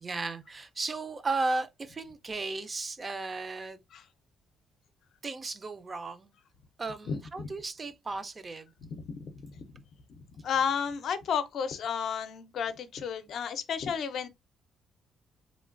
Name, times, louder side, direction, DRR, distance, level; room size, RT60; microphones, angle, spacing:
voice 1, 0.0-3.8 5.2-6.3 6.8-8.7, right 3 dB, 30° right, 0.4 m, -35 dB
voice 2, 7.1-7.5 8.8-9.6 10.2-14.3, left 7 dB, 65° left, 0.5 m, -33 dB
3.1 x 2.2 x 2.4 m
cardioid pair, 110°, 0 cm